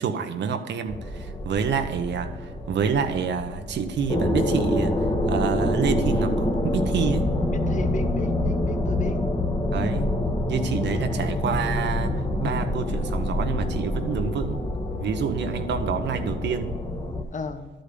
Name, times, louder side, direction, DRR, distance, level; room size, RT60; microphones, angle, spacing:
voice 1, 0.0-5.0 5.3-7.3 9.7-10.1 10.5-14.6 15.0-16.7, right 6 dB, 65° right, 7 dB, 0.9 m, -28 dB
sound 1, 0.9-17.2, left 1 dB, 20° left, 1.5 m, -26 dB
voice 2, 7.5-9.2 17.3-17.7, left 3 dB, 40° left, 9 dB, 1.1 m, -34 dB
12.0 x 5.1 x 6.7 m, 1.3 s
cardioid pair, 90°, 20 cm